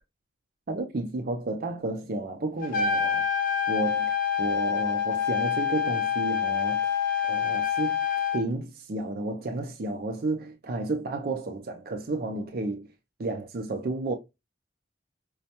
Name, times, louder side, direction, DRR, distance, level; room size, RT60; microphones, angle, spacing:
voice 1, 0.7-3.3 3.7-7.0 7.2-8.0 8.3-12.9 13.2-14.1, right 2 dB, 50° right, 0.5 m, -32 dB
Trumpet, 2.6-8.4, left 8 dB, 45° left, 0.9 m, -26 dB
5.2 x 2.2 x 2.8 m
head